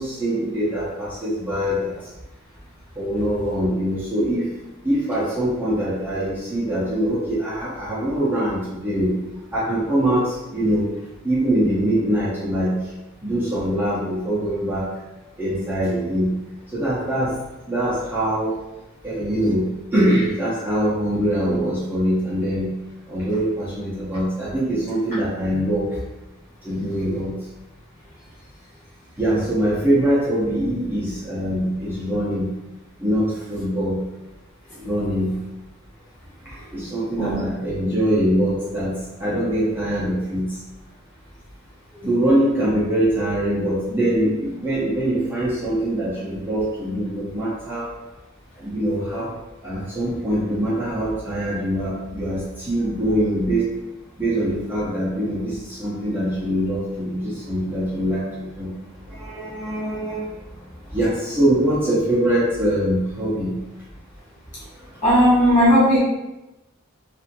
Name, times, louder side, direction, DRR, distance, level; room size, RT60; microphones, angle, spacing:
voice 1, 0.0-1.9 3.0-4.5 4.8-9.2 9.5-10.9 11.2-12.7 13.2-14.9 15.4-16.3 16.7-17.4 17.7-18.6 19.0-19.6 19.9-22.7 23.1-25.9 26.6-27.3 29.2-32.4 33.0-34.0 34.8-35.3 36.7-40.4 42.0-47.9 48.6-49.4 49.6-53.7 54.2-58.7 59.1-60.3 60.9-63.6, right 1 dB, 10° right, -10 dB, 0.6 m, -23 dB
voice 2, 65.0-66.0, equal, 35° left, -9 dB, 1.2 m, -16 dB
2.7 x 2.5 x 2.6 m, 0.99 s
head